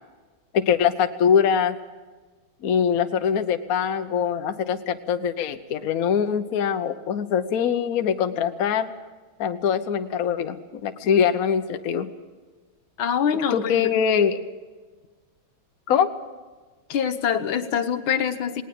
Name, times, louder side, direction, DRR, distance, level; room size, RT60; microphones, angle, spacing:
voice 1, 0.5-1.8 2.6-8.9 9.4-12.1 13.5-14.4 15.9-16.1, left 7 dB, 55° left, 8 dB, 1.2 m, -23 dB
voice 2, 13.0-13.9 16.9-18.6, left 8 dB, 80° left, 8 dB, 1.8 m, -24 dB
19.0 x 19.0 x 7.7 m, 1.3 s
omnidirectional pair, 2.2 m